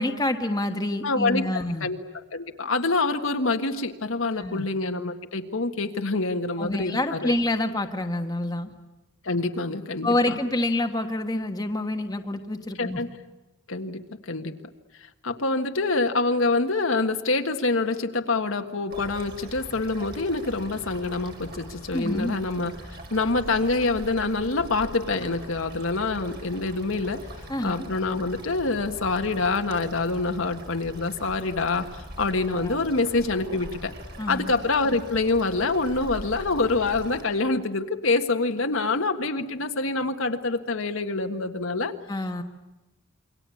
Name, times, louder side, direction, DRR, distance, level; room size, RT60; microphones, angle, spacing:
voice 1, 0.0-1.9 4.4-4.6 6.6-8.7 10.0-13.0 21.9-22.4 27.5-27.9 32.5-32.8 34.2-34.5 42.1-42.4, left 1 dB, 20° left, 4 dB, 1.4 m, -27 dB
voice 2, 1.0-2.0 2.3-7.3 9.2-10.4 12.8-13.1 13.7-14.5 15.2-27.2 27.6-33.9 34.3-41.9, left 3 dB, 70° left, 6 dB, 1.6 m, -26 dB
sound 1, 18.9-37.2, right 1 dB, 50° right, 5.4 m, -42 dB
28.0 x 23.5 x 8.5 m, 1.0 s
head